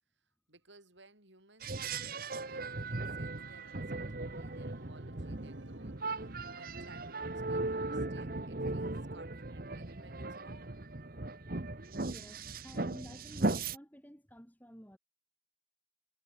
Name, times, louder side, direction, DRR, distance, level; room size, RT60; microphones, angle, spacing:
voice 1, 0.5-10.8, right 3 dB, 70° right, 7.9 m, -60 dB
sound 1, 1.6-13.8, right 2 dB, 45° right, 1.3 m, -38 dB
Organ, 2.5-8.2, right 1 dB, 85° right, 3.1 m, -55 dB
voice 2, 12.0-15.0, equal, 10° left, 7.6 m, -52 dB
head